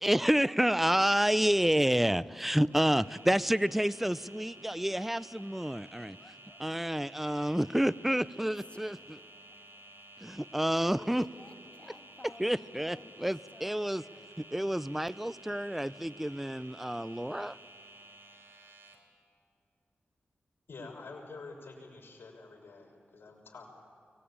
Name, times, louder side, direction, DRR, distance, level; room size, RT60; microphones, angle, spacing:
voice 1, 0.0-6.2 6.6-9.2 10.2-11.2 12.4-14.0 14.5-17.6, right 1 dB, 5° right, 18 dB, 0.5 m, -29 dB
voice 2, 2.6-3.1 5.7-6.6 6.9-7.5 8.7-9.1 11.0-14.3, left 2 dB, 30° left, 5 dB, 2.0 m, -55 dB
sound 1, 2.7-19.0, right 1 dB, 70° right, 4.0 m, -53 dB
voice 3, 20.7-23.6, left 3 dB, 70° left, 0 dB, 6.2 m, -47 dB
23.5 x 19.5 x 8.7 m, 2.4 s
cardioid pair, 55°, 4 cm